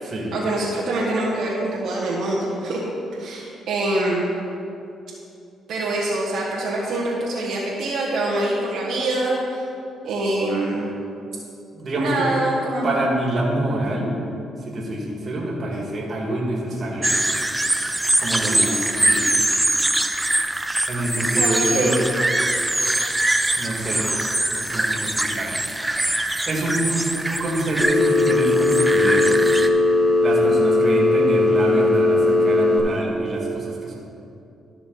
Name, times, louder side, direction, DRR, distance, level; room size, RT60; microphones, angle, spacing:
voice 1, 0.3-2.8 3.1-4.3 5.7-9.6 10.0-10.9 11.9-12.9 18.4-19.0 21.3-22.0, right 2 dB, 75° right, -5 dB, 1.3 m, -25 dB
voice 2, 11.7-12.1 12.8-14.2 14.6-17.1 18.2-19.3 20.9-22.0 23.6-24.1 24.6-25.5 26.5-29.6 30.2-34.0, right 1 dB, 45° right, -2 dB, 2.2 m, -26 dB
sound 1, 17.0-29.7, right 1 dB, 10° right, 0.5 m, -23 dB
Telephone, 27.8-32.8, left 2 dB, 45° left, 1.6 m, -18 dB
13.0 x 5.8 x 4.0 m, 2.8 s
cardioid pair, 90°, 0 cm